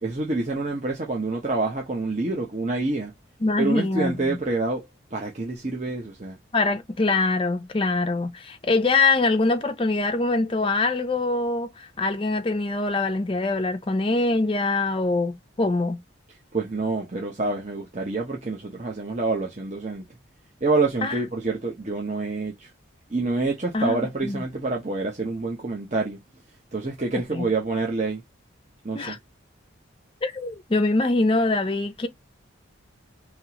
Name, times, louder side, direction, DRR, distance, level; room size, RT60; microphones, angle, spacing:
voice 1, 0.0-3.1 3.6-4.9 5.1-6.4 16.5-20.1 20.6-22.7 23.1-26.2 26.7-28.2 28.8-29.2, right 3 dB, 35° right, 0.9 m, -27 dB
voice 2, 3.4-4.4 6.5-16.0 21.0-21.1 23.7-24.4 27.3-27.5 28.9-29.2 30.2-32.1, left 3 dB, 25° left, 0.5 m, -24 dB
5.4 x 3.0 x 2.9 m
head